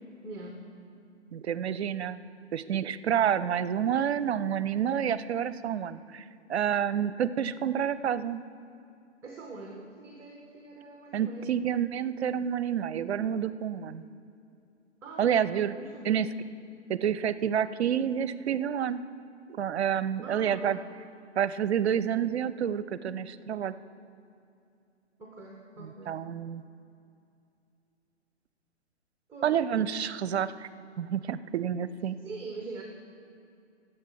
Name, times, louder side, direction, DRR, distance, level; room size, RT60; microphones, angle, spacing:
voice 1, 0.2-0.6 9.2-11.5 15.0-15.5 15.8-16.2 20.2-20.8 25.2-26.2 29.3-29.5 32.2-32.8, right 3 dB, 5° right, 1 dB, 0.7 m, -43 dB
voice 2, 1.3-2.3 2.5-6.2 6.5-8.4 11.1-14.1 15.2-15.8 16.0-16.3 16.9-19.0 19.5-20.8 21.4-23.7 25.8-26.6 29.4-30.7 31.0-32.2, right 9 dB, 65° right, 16 dB, 0.6 m, -29 dB
17.0 x 7.4 x 4.7 m, 2.6 s
figure-of-eight pair, 130°, 36 cm